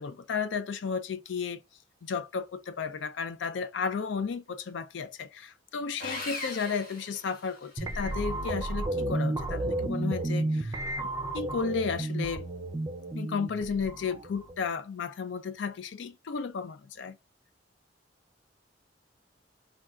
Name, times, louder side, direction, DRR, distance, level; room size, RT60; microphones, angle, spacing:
voice 1, 0.0-1.6 2.0-12.5 13.1-17.2, left 5 dB, 80° left, 0.4 m, -33 dB
Sawing, 6.0-7.9, left 2 dB, 50° left, 1.3 m, -39 dB
sound 1, 7.8-14.7, right 1 dB, 20° right, 0.5 m, -32 dB
3.5 x 2.3 x 2.3 m
head